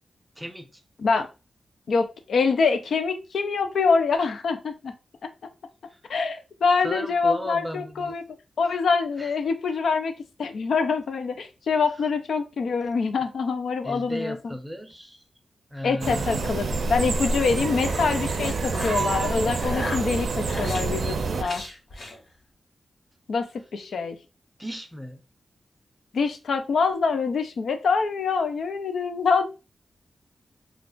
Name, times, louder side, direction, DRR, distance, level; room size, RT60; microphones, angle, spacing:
voice 1, 0.4-0.8 5.9-6.0 6.8-8.2 8.6-8.8 9.2-9.3 13.8-15.2 15.7-16.6 24.6-25.2, equal, 10° right, 0.6 m, -35 dB
voice 2, 1.9-4.9 5.2-5.3 6.1-8.2 8.6-10.1 10.4-14.5 15.8-21.6 23.3-23.5 23.7-24.2 26.1-29.5, left 5 dB, 85° left, 0.4 m, -25 dB
sound 1, 16.0-21.4, right 4 dB, 70° right, 0.5 m, -27 dB
sound 2, 17.6-19.1 19.5-20.8 21.4-22.2, left 2 dB, 65° left, 1.1 m, -36 dB
2.4 x 2.3 x 3.6 m
wide cardioid pair, 90°, 0 cm